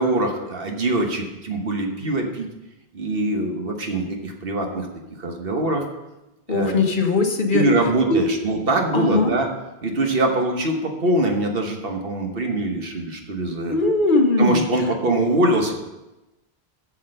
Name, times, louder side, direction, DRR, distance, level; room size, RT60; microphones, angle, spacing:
voice 1, 0.0-2.5 2.9-4.9 5.2-5.9 6.5-6.8 7.5-9.5 9.8-13.8 14.4-15.7, right 2 dB, 65° right, 3 dB, 1.4 m, -23 dB
voice 2, 6.5-7.7 8.1-8.4 8.9-9.3 13.7-14.6, left 3 dB, 55° left, 4 dB, 1.2 m, -20 dB
7.8 x 6.6 x 6.5 m, 1.0 s
omnidirectional pair, 1.1 m